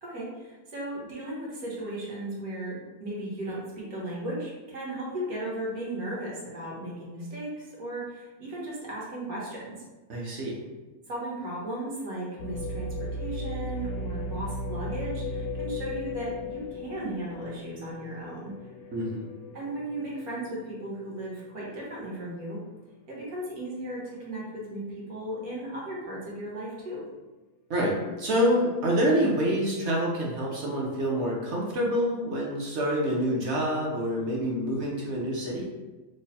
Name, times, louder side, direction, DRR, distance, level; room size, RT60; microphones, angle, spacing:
voice 1, 0.0-9.8 11.1-18.5 19.5-22.6 23.1-27.1, right 1 dB, 80° right, -5 dB, 1.5 m, -36 dB
voice 2, 10.1-10.6 18.9-19.3 27.7-35.7, equal, 60° right, -3 dB, 0.8 m, -27 dB
sound 1, 12.4-22.3 22.8-22.9 23.6-23.9, left 1 dB, 70° left, 0.6 m, -37 dB
3.2 x 2.2 x 4.0 m, 1.2 s
omnidirectional pair, 1.6 m